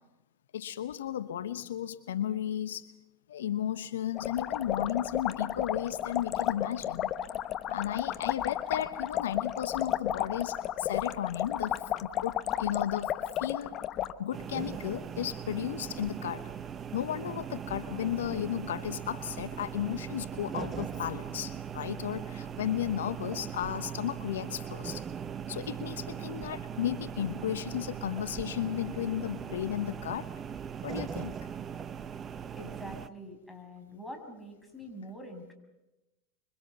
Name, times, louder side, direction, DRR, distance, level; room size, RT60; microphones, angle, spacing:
voice 1, 0.5-2.9 3.3-7.1 7.7-13.7 14.2-16.4 16.9-25.0 25.5-30.3 30.8-31.4, left 11 dB, 75° left, 13 dB, 1.0 m, -34 dB
sound 1, 4.1-14.1, left 11 dB, 40° left, 1.1 m, -33 dB
sound 2, 14.3-33.1, right 8 dB, 30° right, 1.0 m, -39 dB
voice 2, 32.6-35.5, equal, 5° left, 3 dB, 6.5 m, -45 dB
25.5 x 24.0 x 6.9 m, 1.0 s
hypercardioid pair, 85°, 0 cm